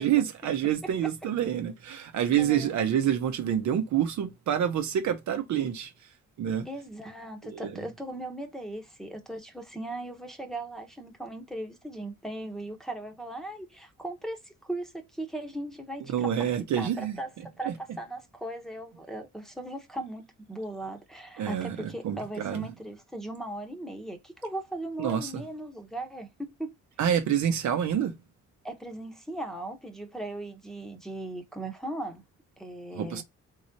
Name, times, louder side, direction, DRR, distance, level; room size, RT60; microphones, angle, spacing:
voice 1, 0.0-5.9 6.4-6.7 7.4-7.7 16.1-17.2 17.7-17.8 21.4-22.7 25.0-25.3 27.0-28.1 33.0-33.2, right 9 dB, 70° right, 0.8 m, -27 dB
voice 2, 2.4-2.7 6.6-16.5 16.8-17.3 17.6-26.7 28.6-32.2 32.6-33.2, right 1 dB, ahead, 1.0 m, -38 dB
3.8 x 3.1 x 2.7 m
cardioid pair, 90°, 30 cm